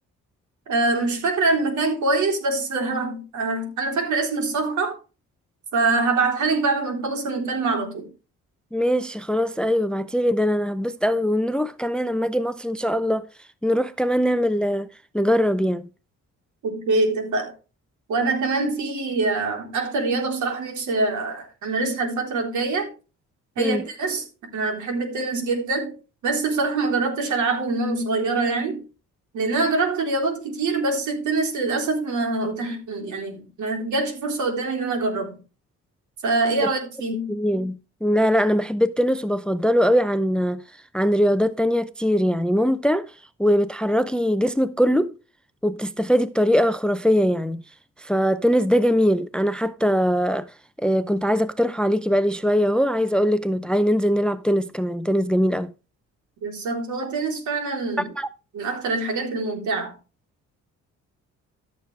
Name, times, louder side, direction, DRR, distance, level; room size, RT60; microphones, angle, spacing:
voice 1, 0.7-5.0 5.7-8.1 16.6-17.5 18.1-22.9 23.6-24.2 24.5-25.9 26.2-28.8 29.3-35.4 36.2-37.4 56.4-58.1 58.5-59.9, right 3 dB, 75° right, 3.7 m, -24 dB
voice 2, 8.7-13.3 13.6-14.9 15.1-15.9 23.6-23.8 36.6-36.7 37.3-40.6 40.9-43.1 43.4-45.1 45.6-47.6 48.0-50.5 50.8-55.7 58.2-58.3, equal, 5° left, 0.5 m, -21 dB
13.5 x 6.7 x 3.3 m
cardioid pair, 90°, 30 cm